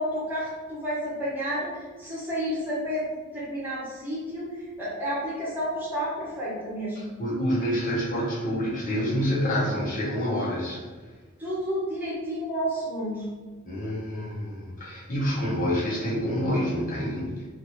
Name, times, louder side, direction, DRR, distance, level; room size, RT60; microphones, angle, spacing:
voice 1, 0.0-7.2 11.4-13.3, equal, 10° right, -9 dB, 1.1 m, -31 dB
voice 2, 7.0-10.8 13.6-17.5, equal, 40° left, -7 dB, 0.8 m, -27 dB
2.7 x 2.5 x 2.9 m, 1.4 s
head